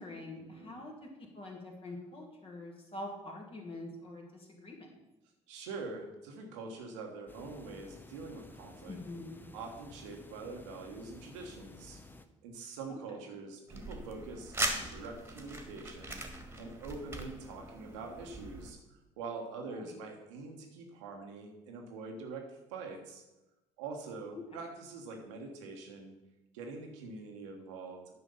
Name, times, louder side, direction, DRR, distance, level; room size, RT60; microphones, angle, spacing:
voice 1, 0.0-4.9 8.9-9.5 12.9-13.0 19.6-19.9 24.3-24.4, left 2 dB, 35° left, 0 dB, 2.4 m, -45 dB
voice 2, 5.5-9.0 9.5-12.0 12.4-16.2 16.6-18.8 19.2-23.2 23.8-26.1 26.5-28.0, right 3 dB, 75° right, 2 dB, 1.3 m, -44 dB
sound 1, 7.3-12.3, left 2 dB, 10° left, 0.8 m, -53 dB
sound 2, 13.7-18.7, right 1 dB, 15° right, 1.9 m, -40 dB
9.6 x 5.1 x 5.5 m, 0.99 s
figure-of-eight pair, 50°, 16 cm